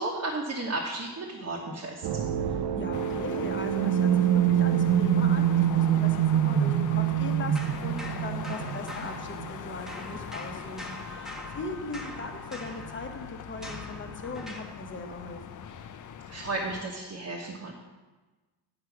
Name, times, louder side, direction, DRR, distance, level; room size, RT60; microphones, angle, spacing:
voice 1, 0.0-2.1 16.3-17.7, right 2 dB, 40° right, -3 dB, 1.1 m, -33 dB
sound 1, 2.0-9.8, right 10 dB, 75° right, 0.6 m, -25 dB
voice 2, 2.8-15.6, left 3 dB, 30° left, 3 dB, 1.0 m, -39 dB
sound 2, 2.9-16.8, left 8 dB, 50° left, 0.5 m, -42 dB
sound 3, 7.5-9.6 9.9-14.8, left 1 dB, ahead, 0.9 m, -43 dB
10.0 x 4.7 x 5.9 m, 1.3 s
wide cardioid pair, 140°, 41 cm